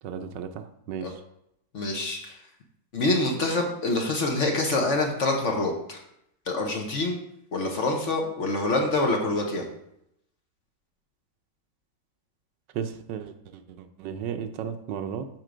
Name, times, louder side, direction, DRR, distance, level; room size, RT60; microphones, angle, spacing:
voice 1, 0.0-1.2 12.7-15.3, right 8 dB, 85° right, 8 dB, 1.4 m, -35 dB
voice 2, 1.7-2.4 2.9-6.0 6.5-7.2 7.5-9.7, left 2 dB, 50° left, 2 dB, 1.2 m, -26 dB
7.8 x 4.6 x 5.0 m, 0.78 s
omnidirectional pair, 1.9 m